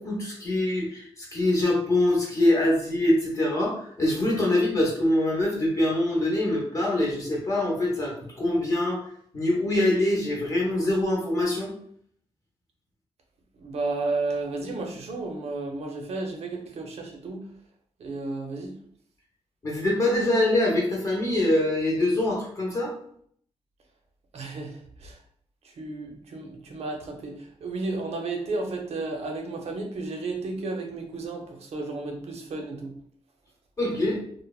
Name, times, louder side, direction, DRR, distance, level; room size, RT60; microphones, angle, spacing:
voice 1, 0.0-9.0 9.3-11.7 19.6-22.9 33.8-34.2, left 1 dB, 30° left, -3 dB, 0.7 m, -24 dB
voice 2, 13.6-17.4 18.0-18.7 24.3-25.2 25.8-32.9, right 3 dB, 75° right, 2 dB, 0.6 m, -33 dB
3.2 x 2.1 x 2.3 m, 0.63 s
wide cardioid pair, 180°, 11 cm